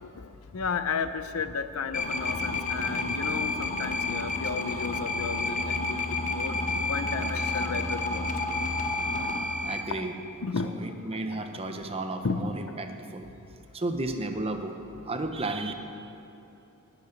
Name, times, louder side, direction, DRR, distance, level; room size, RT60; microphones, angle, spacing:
voice 1, 0.0-6.6 6.8-8.3 9.2-9.3 10.4-10.8 12.2-12.5, left 5 dB, 70° left, 11 dB, 0.6 m, -33 dB
sound 1, 1.9-9.8, left 2 dB, 35° left, 1.0 m, -30 dB
voice 2, 9.6-10.1 10.6-13.3 13.7-14.7 15.0-15.7, right 2 dB, 25° right, 6 dB, 0.8 m, -33 dB
17.0 x 8.3 x 5.2 m, 2.9 s
head